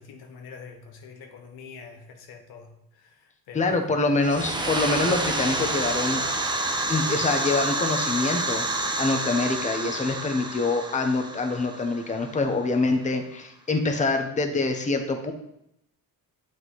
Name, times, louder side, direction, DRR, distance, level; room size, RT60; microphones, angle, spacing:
voice 1, 0.0-3.9, left 5 dB, 90° left, 4 dB, 1.0 m, -45 dB
voice 2, 3.5-6.2 6.9-8.7 9.0-15.3, left 3 dB, 20° left, 5 dB, 0.7 m, -25 dB
sound 1, 4.2-12.7, right 2 dB, 15° right, 0.6 m, -29 dB
7.5 x 3.2 x 4.1 m, 0.78 s
cardioid pair, 100°, 36 cm